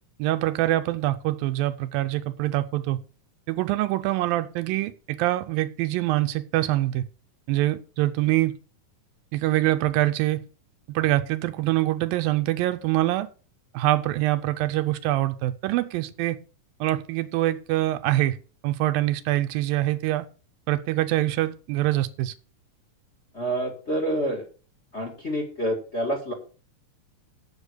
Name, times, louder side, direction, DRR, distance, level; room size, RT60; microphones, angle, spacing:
voice 1, 0.2-3.0 3.5-7.0 7.5-8.5 9.3-10.4 10.9-13.3 13.7-16.4 16.8-18.4 18.6-20.3 20.7-22.3, right 16 dB, 85° right, 2.4 m, -24 dB
voice 2, 23.3-24.5 24.9-26.3, right 1 dB, 25° left, 1.6 m, -27 dB
8.2 x 7.9 x 6.7 m
omnidirectional pair, 4.1 m